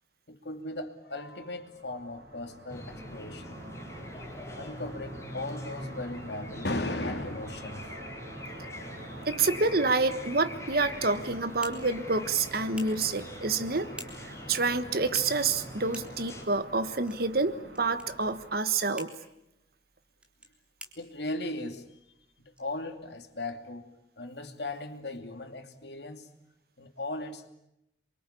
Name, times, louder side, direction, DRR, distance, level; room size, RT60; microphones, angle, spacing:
voice 1, 0.3-3.6 4.1-7.9 21.0-21.9 22.6-26.3 26.8-27.5, left 2 dB, 70° left, 2.8 m, -37 dB
sound 1, 1.4-18.5, right 2 dB, 75° right, 7.6 m, -47 dB
sound 2, 2.7-16.4, left 1 dB, 15° left, 4.5 m, -43 dB
voice 2, 9.3-13.9 14.5-19.1, right 3 dB, 60° right, 1.5 m, -28 dB
sound 3, 11.1-23.4, right 1 dB, 5° right, 3.6 m, -51 dB
27.5 x 24.0 x 8.6 m
head